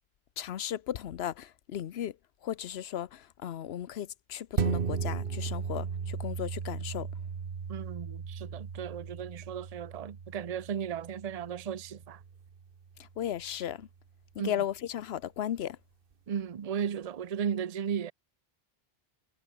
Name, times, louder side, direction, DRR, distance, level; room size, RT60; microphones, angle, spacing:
voice 1, 0.4-2.1 2.4-7.1 13.2-13.9 14.4-15.8, left 10 dB, 85° left, 1.0 m, -35 dB
sound 1, 4.6-13.4 13.8-13.9, right 6 dB, 60° right, 1.3 m, -36 dB
voice 2, 7.7-12.2 14.4-14.5 16.3-18.1, right 8 dB, 45° right, 0.7 m, -35 dB
omnidirectional pair, 1.0 m